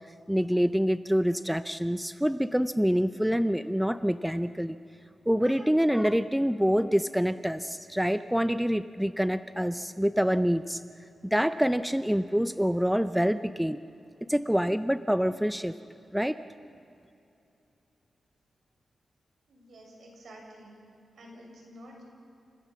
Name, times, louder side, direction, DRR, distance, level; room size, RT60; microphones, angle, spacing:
voice 1, 0.3-4.8 5.3-10.8 11.2-13.8 14.3-15.7 16.1-16.4, equal, 5° right, 12 dB, 0.5 m, -26 dB
voice 2, 19.5-20.8 21.1-22.0, equal, 70° right, 0 dB, 6.4 m, -50 dB
29.0 x 15.5 x 7.4 m, 2.8 s
wide cardioid pair, 100°, 0 cm